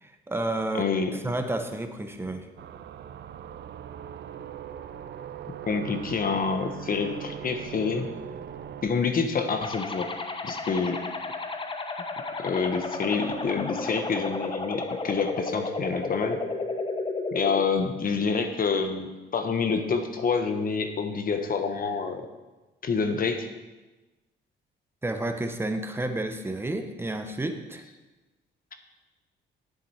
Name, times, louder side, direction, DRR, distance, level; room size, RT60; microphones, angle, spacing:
voice 1, 0.0-2.5 25.0-27.8, right 2 dB, 10° right, 6 dB, 1.1 m, -31 dB
voice 2, 0.7-1.1 5.7-8.1 8.8-10.1 10.4-11.0 12.4-16.4 17.3-22.3 22.8-23.5, left 5 dB, 45° left, 7 dB, 1.2 m, -27 dB
sound 1, 2.6-8.9, right 9 dB, 60° right, 0.6 m, -40 dB
sound 2, 9.6-17.6, left 3 dB, 25° left, 0.9 m, -33 dB
10.5 x 7.7 x 4.4 m, 1.1 s
cardioid pair, 90°, 20 cm